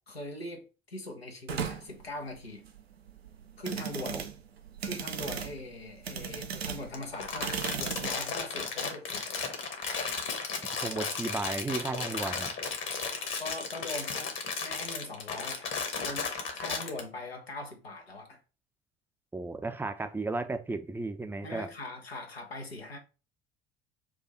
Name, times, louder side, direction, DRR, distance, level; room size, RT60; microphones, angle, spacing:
voice 1, 0.1-2.6 3.6-4.3 4.8-9.3 13.4-15.7 16.0-18.4 21.4-23.0, left 2 dB, 85° left, 0.8 m, -41 dB
sound 1, 1.5-8.1, right 7 dB, 85° right, 0.5 m, -37 dB
Crumpling crinkling, 6.9-17.0, left 5 dB, 40° left, 1.1 m, -34 dB
voice 2, 10.8-12.5 19.3-21.7, right 3 dB, 5° right, 0.5 m, -34 dB
4.7 x 2.4 x 4.3 m
figure-of-eight pair, 55°, 30 cm